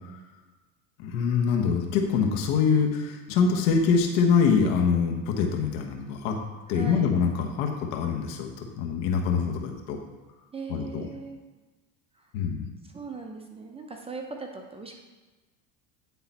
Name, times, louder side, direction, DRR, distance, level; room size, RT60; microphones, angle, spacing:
voice 1, 1.0-6.3 6.7-8.5 8.8-10.0 10.7-11.1 12.3-12.7, left 6 dB, 70° left, 2 dB, 1.3 m, -24 dB
voice 2, 6.7-7.1 10.5-11.4 12.2-12.3 12.9-15.0, right 4 dB, 15° right, 2 dB, 0.7 m, -39 dB
9.4 x 3.8 x 4.2 m, 1.2 s
supercardioid pair, 115°, 40 cm